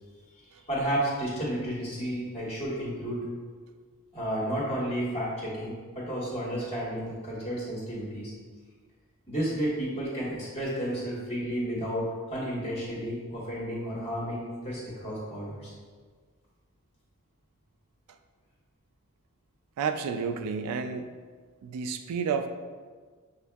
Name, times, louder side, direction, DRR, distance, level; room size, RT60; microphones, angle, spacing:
voice 1, 0.7-3.3 4.1-8.3 9.3-15.7, equal, 25° left, -7 dB, 1.3 m, -32 dB
voice 2, 19.8-21.1 21.6-22.5, right 6 dB, 85° right, 11 dB, 0.3 m, -31 dB
6.4 x 2.5 x 2.3 m, 1.6 s
head